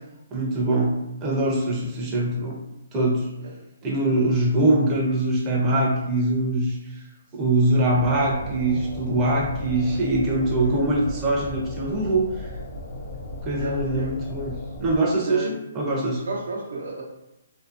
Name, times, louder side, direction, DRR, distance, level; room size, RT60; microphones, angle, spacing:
voice 1, 0.3-2.6 2.9-3.3 3.8-6.8 7.3-12.5 13.4-16.2, right 2 dB, 25° right, -2 dB, 0.6 m, -23 dB
sound 1, 7.9-15.0, left 1 dB, 50° left, 0.5 m, -36 dB
voice 2, 13.5-14.2 15.2-15.5 16.2-17.0, right 2 dB, 75° right, -2 dB, 0.7 m, -31 dB
2.6 x 2.0 x 2.5 m, 0.89 s
hypercardioid pair, 145°, 0 cm